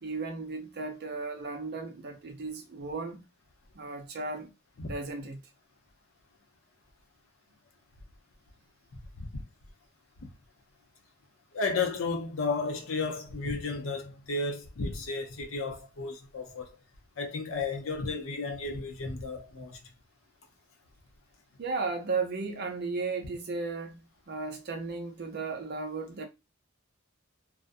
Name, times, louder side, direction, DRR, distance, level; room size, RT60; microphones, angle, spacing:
voice 1, 0.0-3.3 3.7-4.5 4.8-5.4 21.6-26.3, right 4 dB, 50° right, 0.6 m, -35 dB
voice 2, 11.5-16.7 17.2-19.8, left 3 dB, 70° left, 0.6 m, -33 dB
2.4 x 2.1 x 2.5 m
head